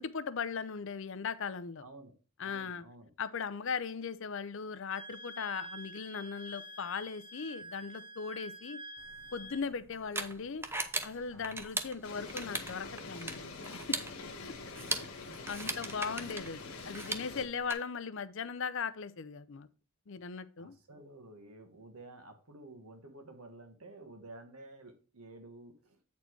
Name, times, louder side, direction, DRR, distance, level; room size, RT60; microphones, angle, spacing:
voice 1, 0.0-1.8 2.4-2.8 3.2-8.8 9.3-10.6 11.0-13.5 13.9-14.0 15.0-19.7 20.1-20.7, left 5 dB, 60° left, 0.5 m, -38 dB
voice 2, 1.8-2.1 2.4-3.1 11.3-11.7 20.6-26.0, right 2 dB, 90° right, 1.4 m, -52 dB
Wind instrument woodwind instrument, 4.9-9.6, right 1 dB, 35° left, 0.8 m, -47 dB
sound 1, 9.0-17.7, right 3 dB, 10° right, 0.5 m, -40 dB
sound 2, 12.0-17.4, left 3 dB, 75° left, 1.4 m, -45 dB
8.3 x 4.3 x 4.5 m
head